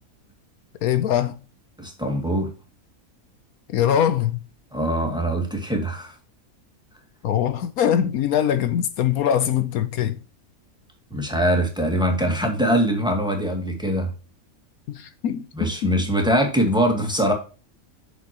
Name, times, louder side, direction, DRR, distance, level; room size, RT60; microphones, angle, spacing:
voice 1, 0.8-1.3 3.7-4.4 7.2-10.2 14.9-15.9, left 9 dB, 75° left, 1.2 m, -22 dB
voice 2, 1.8-2.5 4.7-6.1 11.1-14.1 15.5-17.3, equal, 5° right, 2.1 m, -22 dB
8.5 x 6.5 x 3.0 m
omnidirectional pair, 1.5 m